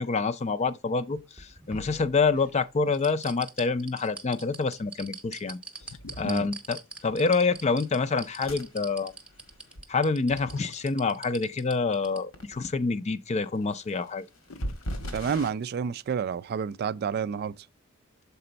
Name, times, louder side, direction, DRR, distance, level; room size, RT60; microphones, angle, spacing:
voice 1, 0.0-5.6 6.2-9.1 9.9-14.3, left 4 dB, 30° left, 0.4 m, -27 dB
sound 1, 1.2-2.5 2.9-12.2 12.5-12.6, right 3 dB, 5° right, 0.8 m, -42 dB
sound 2, 1.7-2.0 5.8-6.9 10.3-11.4 14.0-14.2 14.5-15.1 15.3-15.9, left 2 dB, 70° left, 0.7 m, -46 dB
sound 3, 5.7-5.8 6.2-6.5 7.0-9.8 12.0-12.1 12.3-12.7 13.5-15.5, equal, 90° left, 1.9 m, -40 dB
voice 2, 15.1-17.7, right 6 dB, 50° right, 0.3 m, -29 dB
6.8 x 4.3 x 3.9 m
head